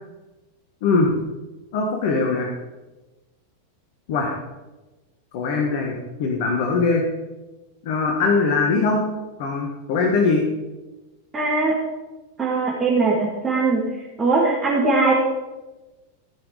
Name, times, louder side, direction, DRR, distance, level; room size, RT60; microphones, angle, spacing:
voice 1, 1.7-2.5 4.1-4.3 5.3-7.0 7.8-9.0 9.4-10.4, left 4 dB, 50° left, 1 dB, 1.7 m, -21 dB
voice 2, 11.3-11.7 12.4-13.8 14.2-15.1, right 3 dB, 20° right, -7 dB, 2.9 m, -20 dB
15.5 x 6.4 x 5.1 m, 1.1 s
figure-of-eight pair, 90°, 0 cm